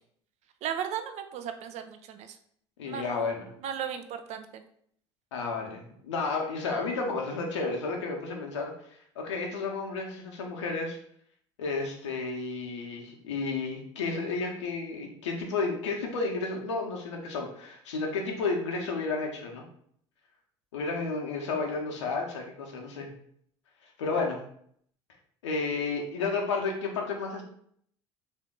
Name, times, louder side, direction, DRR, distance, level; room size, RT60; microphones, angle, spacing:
voice 1, 0.6-2.4 2.9-4.6, right 8 dB, 50° right, 8 dB, 0.5 m, -36 dB
voice 2, 2.8-3.5 5.3-8.7 9.2-11.0 11.6-19.6 20.7-23.1 24.0-24.4 25.4-27.4, left 4 dB, 80° left, 1 dB, 0.8 m, -32 dB
3.6 x 2.7 x 3.5 m, 0.65 s
hypercardioid pair, 65°, 15 cm